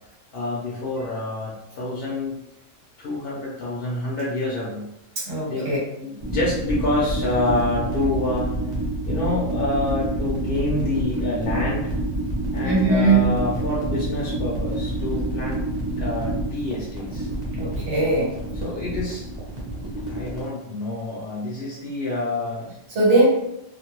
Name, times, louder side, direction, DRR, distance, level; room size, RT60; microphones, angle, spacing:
voice 1, 0.3-2.4 3.0-4.9 5.5-5.7 6.0-8.5 9.0-11.9 12.5-15.6 16.0-17.3 18.6-19.3 20.1-22.8, left 2 dB, 60° left, -6 dB, 0.7 m, -27 dB
voice 2, 5.3-5.8 12.6-13.3 17.5-18.3 22.9-23.3, right 3 dB, 55° right, -5 dB, 1.2 m, -20 dB
sound 1, 6.2-20.5, right 1 dB, 40° right, 0.9 m, -28 dB
2.5 x 2.1 x 2.9 m, 0.84 s
omnidirectional pair, 1.3 m